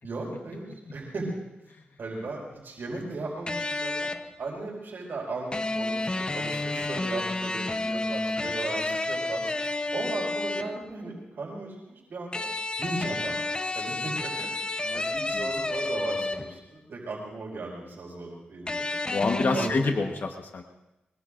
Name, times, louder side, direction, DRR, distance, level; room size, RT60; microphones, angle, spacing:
voice 1, 0.0-1.3 2.0-4.1 4.4-9.5 9.9-12.4 12.8-13.4 13.7-18.9 19.5-20.0, right 3 dB, 70° right, -1 dB, 5.2 m, -36 dB
sound 1, 3.5-4.4 5.5-10.9 12.3-16.7 18.7-19.7, left 2 dB, 25° left, 0.8 m, -30 dB
voice 2, 19.1-20.6, left 3 dB, 60° left, 3 dB, 1.2 m, -28 dB
23.5 x 22.0 x 2.6 m, 0.95 s
cardioid pair, 75°, 4 cm